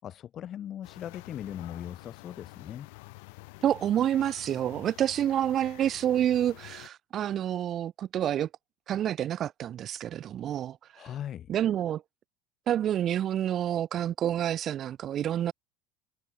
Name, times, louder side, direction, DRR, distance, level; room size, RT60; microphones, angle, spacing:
voice 1, 0.0-2.9 10.9-11.5, left 10 dB, 40° left, 6.5 m, -39 dB
sound 1, 0.8-6.9, left 28 dB, 75° left, 7.6 m, -49 dB
voice 2, 3.6-8.5 8.9-11.0 11.5-12.0 12.7-15.5, right 11 dB, 45° right, 1.8 m, -28 dB
supercardioid pair, 110°, 0 cm